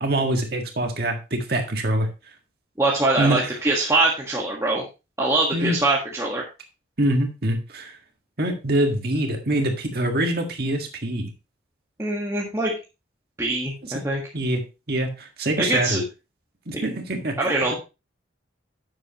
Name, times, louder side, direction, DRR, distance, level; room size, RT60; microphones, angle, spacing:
voice 1, 0.0-2.1 3.2-3.6 5.5-5.8 7.0-8.0 8.4-11.3 13.9-14.0 14.3-14.6 14.9-16.0 16.7-17.7, right 1 dB, 50° right, 4 dB, 1.8 m, -24 dB
voice 2, 2.8-4.8 5.2-6.5 12.0-12.7 13.4-14.2 15.6-16.0 16.7-16.8 17.4-17.7, right 2 dB, 15° right, -3 dB, 1.5 m, -23 dB
11.0 x 7.7 x 3.0 m, 0.29 s
head